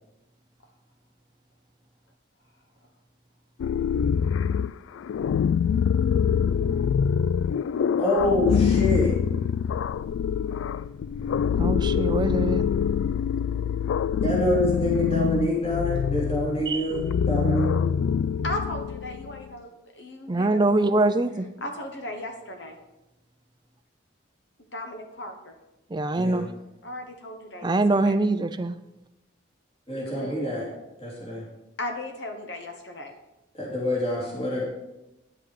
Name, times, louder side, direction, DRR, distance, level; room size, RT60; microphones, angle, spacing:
sound 1, 3.6-19.4, left 7 dB, 80° left, 0.3 m, -25 dB
voice 1, 8.0-9.1 14.2-17.7 26.1-26.5 29.9-30.7 31.0-31.4 33.6-34.6, left 1 dB, 30° left, -4 dB, 2.8 m, -26 dB
voice 2, 11.6-12.6 16.7-16.9 20.3-21.5 25.9-26.5 27.6-28.8, right 2 dB, 20° right, 10 dB, 0.4 m, -23 dB
voice 3, 18.4-21.1 21.6-22.8 24.7-25.6 26.8-27.8 28.1-28.2 30.0-30.5 31.8-33.1, left 1 dB, 60° left, 5 dB, 1.2 m, -36 dB
9.9 x 8.0 x 4.9 m, 0.94 s
head